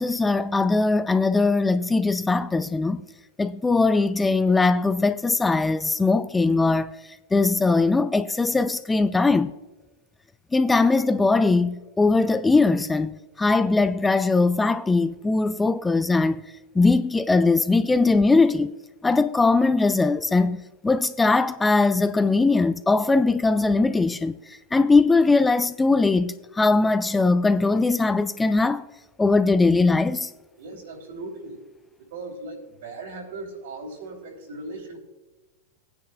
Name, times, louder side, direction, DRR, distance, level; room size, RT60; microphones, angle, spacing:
voice 1, 0.0-3.0 3.4-7.0 7.3-9.5 10.5-16.4 16.8-18.7 19.0-20.6 20.8-24.4 24.7-28.8 29.2-30.3, left 3 dB, 10° left, 0.4 m, -20 dB
voice 2, 30.6-31.6 32.1-35.0, right 2 dB, 75° right, 3.0 m, -38 dB
19.0 x 9.6 x 2.2 m
hypercardioid pair, 95°, 0 cm